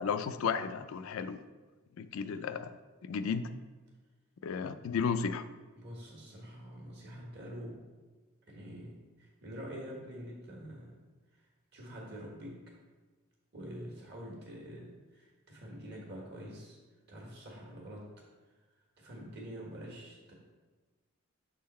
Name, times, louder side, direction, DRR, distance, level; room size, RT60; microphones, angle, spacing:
voice 1, 0.0-1.4 2.0-2.7 3.0-3.5 4.4-5.4, left 6 dB, 70° left, 11 dB, 0.3 m, -33 dB
voice 2, 5.8-7.8 8.5-10.9 11.3-11.5 11.7-12.5 13.5-16.8 17.1-18.0 19.0-20.3, equal, 50° right, -2 dB, 1.5 m, -46 dB
6.8 x 3.8 x 4.2 m, 1.3 s
head